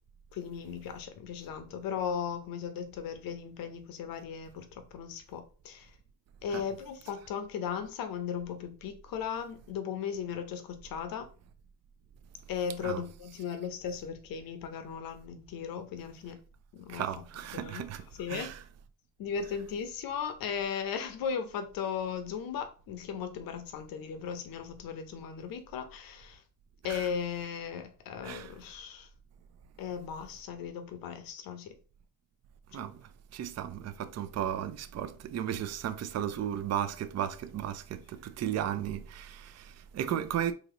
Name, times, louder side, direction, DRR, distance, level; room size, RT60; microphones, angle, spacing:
voice 1, 0.3-5.9 6.4-11.3 12.5-16.4 16.7-18.6 19.2-26.4 26.8-29.1 29.8-31.7 32.7-32.8, left 7 dB, 90° left, 0.7 m, -37 dB
voice 2, 16.9-18.6 26.9-27.0 28.2-28.5 32.7-33.0 33.3-40.5, right 10 dB, 50° right, 0.5 m, -35 dB
3.9 x 3.0 x 2.9 m
cardioid pair, 90°, 34 cm